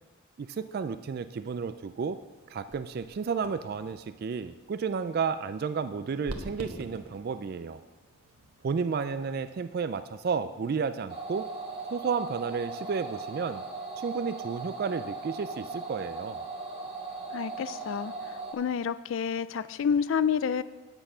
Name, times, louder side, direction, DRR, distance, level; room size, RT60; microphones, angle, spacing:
voice 1, 0.4-2.2 2.5-7.8 8.6-11.5 11.9-13.6 14.0-16.4, right 5 dB, 45° right, 11 dB, 0.3 m, -32 dB
sound 1, 2.0-9.7, right 1 dB, 90° right, 1.3 m, -47 dB
sound 2, 11.1-18.5, right 3 dB, 25° right, 1.7 m, -38 dB
voice 2, 17.3-20.6, left 7 dB, 65° left, 16 dB, 0.3 m, -29 dB
9.0 x 8.0 x 5.5 m, 1.2 s
head